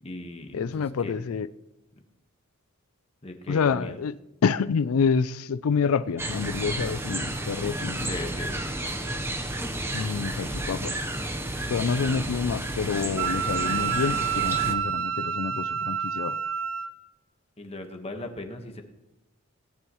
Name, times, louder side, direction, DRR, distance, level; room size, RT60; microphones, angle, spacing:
voice 1, 0.0-1.2 3.2-4.0 8.0-8.6 17.6-18.8, left 2 dB, 25° left, 1.3 m, -38 dB
voice 2, 0.5-1.5 3.5-4.1 4.4-8.1 9.9-11.1 11.7-16.4, left 6 dB, 70° left, 0.4 m, -27 dB
sound 1, 6.2-14.7, right 1 dB, 10° right, 0.9 m, -32 dB
Wind instrument woodwind instrument, 13.2-16.9, right 8 dB, 80° right, 0.8 m, -28 dB
17.5 x 10.0 x 3.1 m
head